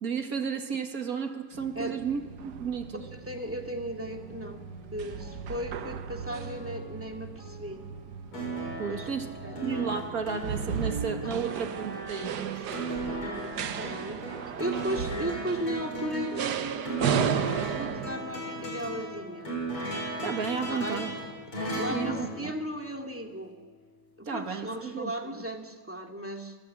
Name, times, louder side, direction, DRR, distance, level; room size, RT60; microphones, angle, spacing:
voice 1, 0.0-3.0 8.8-12.4 20.2-21.1 21.9-22.5 24.3-25.4, right 6 dB, 45° right, 5 dB, 2.3 m, -33 dB
sound 1, 1.5-18.2, right 7 dB, 60° right, 1.4 m, -35 dB
voice 2, 3.2-4.6 4.9-7.8 8.8-9.1 9.4-9.6 11.4-11.6 13.1-14.2 14.6-17.1 17.7-19.5 20.5-21.1 21.8-23.5 24.2-26.6, right 1 dB, 5° right, 2 dB, 2.0 m, -36 dB
sound 2, 4.0-22.6, equal, 25° right, 4.7 m, -52 dB
sound 3, 8.3-23.2 24.5-24.6, right 2 dB, 85° left, 6.8 m, -36 dB
28.0 x 18.5 x 8.7 m, 1.5 s
omnidirectional pair, 2.4 m